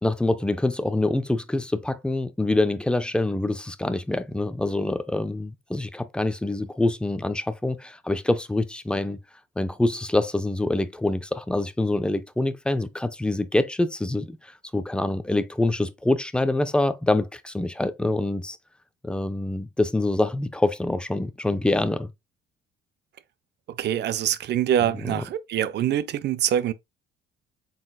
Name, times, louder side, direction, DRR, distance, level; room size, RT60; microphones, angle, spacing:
voice 1, 0.0-9.2 9.6-18.6 19.0-22.1 25.0-25.2, left 2 dB, 5° left, 0.4 m, -25 dB
voice 2, 23.8-26.7, right 10 dB, 55° right, 0.5 m, -24 dB
4.0 x 3.9 x 2.3 m
cardioid pair, 100°, 21 cm